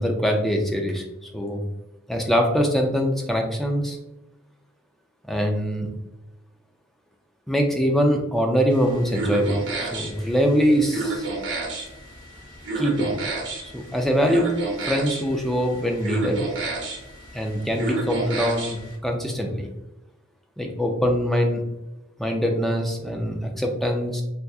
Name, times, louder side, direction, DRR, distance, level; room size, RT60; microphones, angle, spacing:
voice 1, 0.0-1.6 2.1-4.0 5.3-5.9 7.5-11.3 12.8-13.1 13.6-14.5 14.8-16.4 17.3-19.7 20.6-21.6 22.2-24.2, equal, ahead, 2 dB, 0.4 m, -23 dB
sound 1, 8.7-18.9, right 3 dB, 60° right, 0.8 m, -31 dB
3.4 x 2.8 x 2.3 m, 0.95 s
head